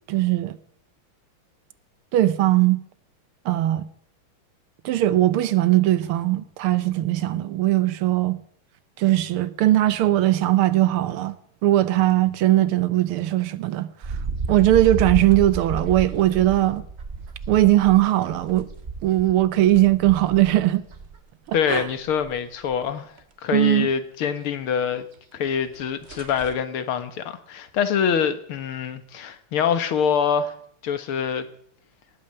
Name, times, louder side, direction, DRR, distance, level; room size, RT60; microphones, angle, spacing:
voice 1, 0.1-0.6 2.1-2.8 3.5-3.8 4.9-8.4 9.0-11.4 11.6-13.9 14.5-16.8 17.5-18.7 19.0-20.8 21.5-21.9 23.5-23.9, right 14 dB, 85° right, 1.7 m, -19 dB
sound 1, 14.0-21.2 21.5-22.4 22.7-22.8 23.2-23.3 25.3-25.4 25.7-25.8 26.0-26.5, right 4 dB, 35° right, 1.3 m, -32 dB
voice 2, 21.5-23.1 23.4-25.1 25.3-30.5 30.8-31.5, left 7 dB, 80° left, 2.2 m, -25 dB
18.0 x 8.8 x 7.8 m
omnidirectional pair, 2.3 m